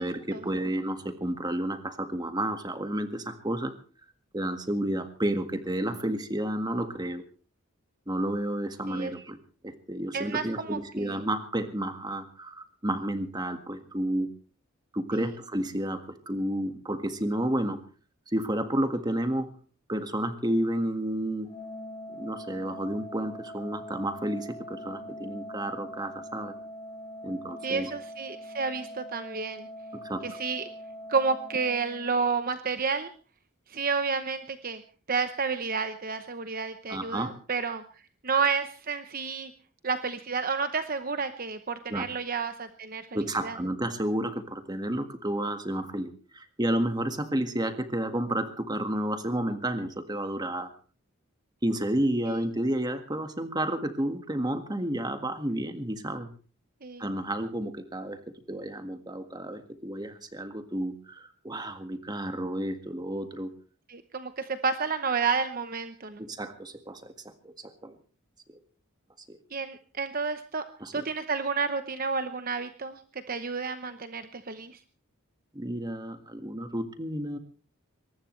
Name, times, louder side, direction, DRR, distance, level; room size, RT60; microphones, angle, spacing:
voice 1, 0.0-3.7 4.3-7.2 8.1-9.4 9.6-14.3 14.9-17.8 18.3-19.5 19.9-21.5 22.1-26.5 27.2-27.9 30.0-30.2 36.9-37.3 41.9-42.1 43.1-50.7 51.6-56.3 57.0-58.2 58.5-63.5 66.2-68.0 68.5-68.6 69.3-69.4 70.8-71.0 75.6-77.4, right 1 dB, 20° right, 7 dB, 1.8 m, -31 dB
voice 2, 10.1-11.2 15.1-15.3 27.6-29.7 30.2-30.6 31.1-33.1 33.7-34.8 35.1-37.8 38.2-39.5 39.8-43.0 43.4-43.6 52.3-52.4 56.8-57.1 63.9-66.2 69.5-70.6 70.9-73.0 73.3-74.8, right 5 dB, 40° right, 9 dB, 0.9 m, -30 dB
Organ, 21.4-32.5, equal, 15° left, 6.2 m, -43 dB
22.5 x 19.5 x 3.3 m, 0.39 s
head